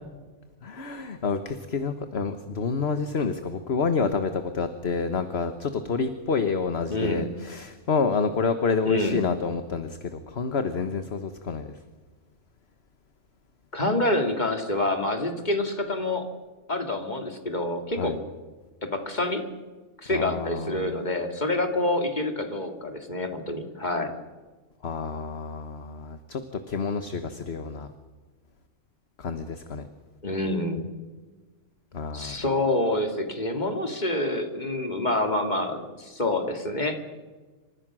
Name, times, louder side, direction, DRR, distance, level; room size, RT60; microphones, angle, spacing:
voice 1, 0.6-11.8 18.0-18.2 20.1-21.0 24.8-27.9 29.2-29.9 31.9-32.4, left 5 dB, 55° left, 9 dB, 1.5 m, -28 dB
voice 2, 6.9-7.2 8.8-9.2 13.7-16.3 16.7-18.1 18.8-19.4 20.0-24.1 30.2-30.9 32.1-37.0, left 1 dB, 35° left, 5 dB, 2.7 m, -27 dB
28.0 x 26.0 x 6.3 m, 1.3 s
omnidirectional pair, 1.3 m